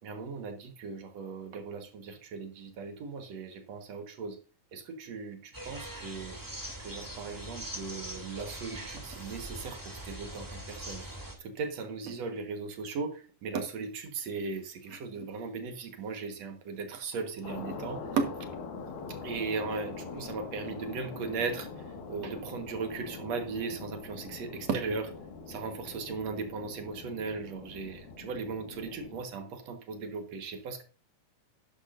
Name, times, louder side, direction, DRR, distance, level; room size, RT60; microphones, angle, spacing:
voice 1, 0.0-4.4 4.7-6.4 6.8-18.5 19.1-25.1 25.5-30.8, right 4 dB, 55° right, 6 dB, 2.1 m, -37 dB
sound 1, 5.5-11.4, right 1 dB, 5° right, 1.7 m, -42 dB
sound 2, 17.4-29.2, left 4 dB, 70° left, 3.3 m, -43 dB
12.0 x 11.0 x 2.6 m, 0.36 s
omnidirectional pair, 4.4 m